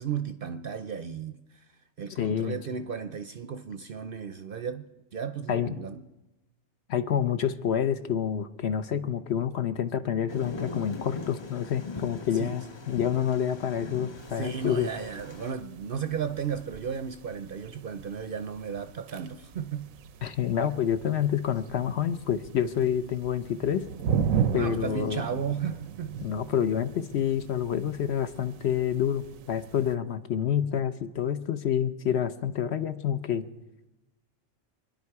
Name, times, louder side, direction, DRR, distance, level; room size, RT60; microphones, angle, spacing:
voice 1, 0.0-1.7 2.0-4.8 5.1-6.0 12.3-12.6 14.3-19.9 24.6-26.3, right 7 dB, 55° right, 0.7 m, -34 dB
voice 2, 2.1-2.6 5.5-5.7 6.9-14.9 20.2-23.8 24.5-25.2 26.2-33.5, left 9 dB, 60° left, 0.9 m, -28 dB
Thunder, 10.3-15.5, left 3 dB, 30° left, 0.5 m, -41 dB
sound 1, 14.2-29.9, right 8 dB, 90° right, 1.1 m, -37 dB
24.5 x 10.5 x 4.7 m
omnidirectional pair, 1.4 m